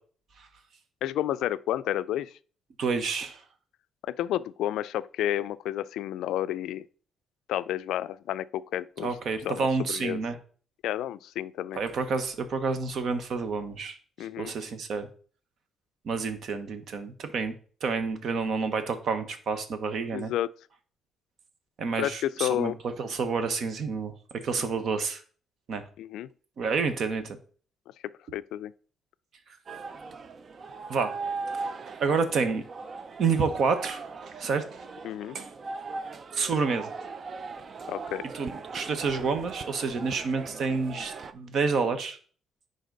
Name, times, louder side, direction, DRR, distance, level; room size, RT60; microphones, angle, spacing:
voice 1, 1.0-2.3 4.0-6.8 7.5-9.1 9.5-10.2 10.8-11.8 14.2-14.5 20.1-20.5 22.0-22.8 24.6-24.7 26.0-26.3 28.3-28.7 35.0-35.4 37.9-38.2, left 12 dB, 85° left, 0.3 m, -31 dB
voice 2, 2.8-3.4 9.0-10.4 11.7-14.0 14.4-15.1 16.0-17.5 17.8-20.3 21.8-22.7 23.0-25.2 25.7-25.8 26.6-27.4 30.9-31.1 31.5-32.6 33.2-34.9 35.3-35.5 36.3-36.9 38.3-42.2, right 4 dB, 65° right, 1.2 m, -29 dB
sound 1, 29.7-41.3, right 4 dB, 45° right, 0.6 m, -39 dB
10.0 x 4.0 x 3.9 m
cardioid pair, 90°, 0 cm